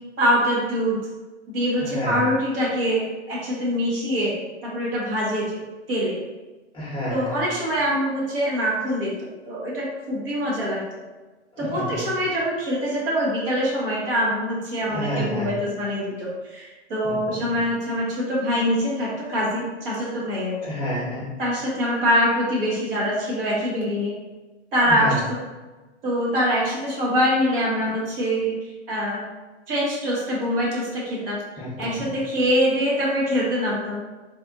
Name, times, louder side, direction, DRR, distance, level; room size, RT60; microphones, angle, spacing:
voice 1, 0.2-1.0 1.5-5.6 5.9-6.2 7.1-9.1 9.5-10.8 11.6-20.6 21.4-24.1 24.7-25.4 26.0-28.6 28.9-29.3 29.7-31.4 31.8-34.0, equal, 50° right, -5 dB, 1.3 m, -24 dB
voice 2, 1.8-2.2 6.7-7.4 11.6-12.0 14.8-15.5 17.0-17.4 20.6-21.3 24.9-25.2 31.6-32.1, equal, 15° left, -7 dB, 0.9 m, -29 dB
3.4 x 2.5 x 2.5 m, 1.2 s
figure-of-eight pair, 110°, 35 cm